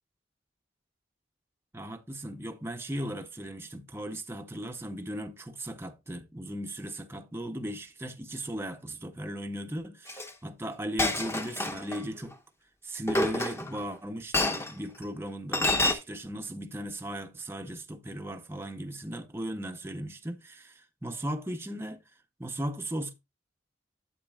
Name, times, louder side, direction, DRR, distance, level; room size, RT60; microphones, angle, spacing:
voice 1, 1.7-12.3 12.8-22.0 22.4-23.1, right 1 dB, 15° right, 0.6 m, -37 dB
Chink clink, 10.1-10.3 11.0-12.0 13.1-13.8 14.3-14.7 15.5-15.9, left 2 dB, 15° left, 0.8 m, -27 dB
8.7 x 7.8 x 2.2 m
head